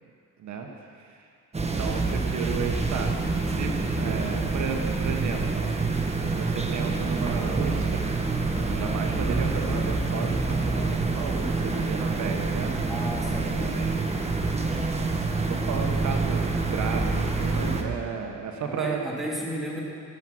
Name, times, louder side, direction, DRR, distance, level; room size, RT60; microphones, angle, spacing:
sound 1, 1.5-17.8, right 3 dB, 20° right, 1.3 m, -27 dB
voice 1, 1.6-3.1 3.5-3.7 3.9-5.7 6.3-8.1 8.6-12.7 13.4-14.0 15.5-19.0, right 6 dB, 70° right, 2 dB, 1.3 m, -33 dB
voice 2, 12.9-14.3 18.7-19.8, equal, ahead, -4 dB, 3.1 m, -34 dB
18.0 x 7.4 x 6.3 m, 2.3 s
cardioid pair, 90°, 30 cm